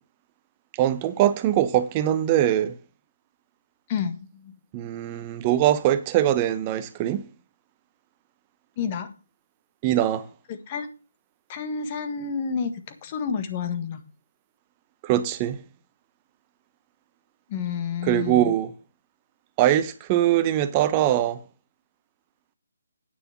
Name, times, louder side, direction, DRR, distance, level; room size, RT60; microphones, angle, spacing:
voice 1, 0.8-2.7 4.7-7.2 9.8-10.3 15.0-15.6 18.1-18.7 19.6-21.4, right 12 dB, 25° right, 0.9 m, -22 dB
voice 2, 3.9-4.5 8.8-9.1 10.5-10.9 11.5-14.0 17.5-18.5, left 6 dB, 30° left, 1.6 m, -30 dB
9.4 x 6.7 x 6.0 m
figure-of-eight pair, 150°, 0 cm